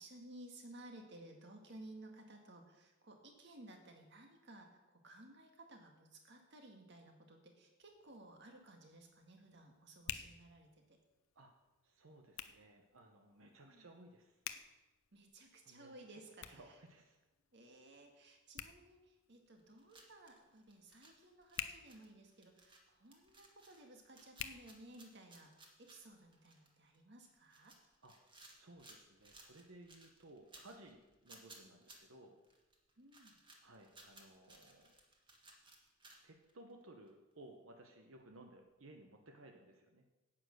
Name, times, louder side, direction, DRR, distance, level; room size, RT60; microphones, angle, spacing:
voice 1, 0.0-11.0 13.6-13.9 15.1-16.8 17.5-27.8 33.0-33.4, right 1 dB, 60° right, 3 dB, 1.8 m, -57 dB
Hands, 7.8-25.5, left 9 dB, 85° left, 0.7 m, -53 dB
voice 2, 11.8-14.4 15.6-16.2 16.5-17.2 28.0-28.2 28.5-32.4 33.6-34.9 36.2-40.0, right 1 dB, 90° right, 3 dB, 1.1 m, -59 dB
sound 1, 19.5-36.8 37.1-37.2 38.2-38.3, right 2 dB, 25° right, 1.6 m, -62 dB
9.7 x 8.9 x 6.5 m, 1.1 s
head